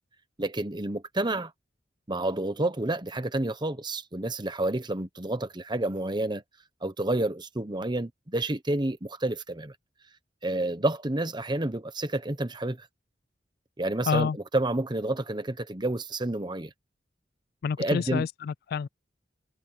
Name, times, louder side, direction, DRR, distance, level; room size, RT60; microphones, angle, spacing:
voice 1, 0.4-1.5 2.1-6.4 6.8-9.7 10.4-12.9 13.8-16.7 17.8-18.3, right 2 dB, 25° right, 1.2 m, -29 dB
voice 2, 14.1-14.4 17.6-18.9, left 6 dB, 55° left, 0.3 m, -28 dB
head